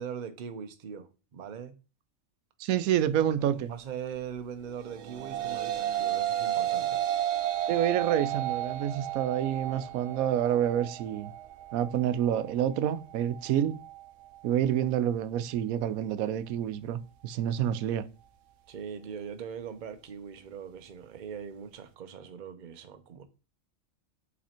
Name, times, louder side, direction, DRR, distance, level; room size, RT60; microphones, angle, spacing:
voice 1, 0.0-1.7 3.4-7.0 18.7-23.2, right 7 dB, 45° right, 0.7 m, -41 dB
voice 2, 2.6-3.7 7.7-11.3 11.7-13.8 14.4-18.1, right 10 dB, 90° right, 1.0 m, -28 dB
sound 1, 4.8-14.0, right 12 dB, 70° right, 0.9 m, -32 dB
5.9 x 4.2 x 4.3 m
omnidirectional pair, 1.4 m